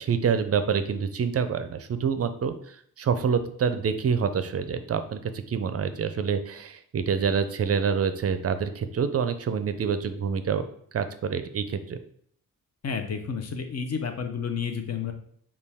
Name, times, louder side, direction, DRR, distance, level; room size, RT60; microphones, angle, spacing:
voice 1, 0.0-10.6 10.9-12.0, right 6 dB, 45° right, 10 dB, 0.4 m, -27 dB
voice 2, 12.8-15.1, left 6 dB, 45° left, 6 dB, 0.6 m, -31 dB
5.2 x 2.3 x 3.4 m, 0.63 s
cardioid pair, 90°, 35 cm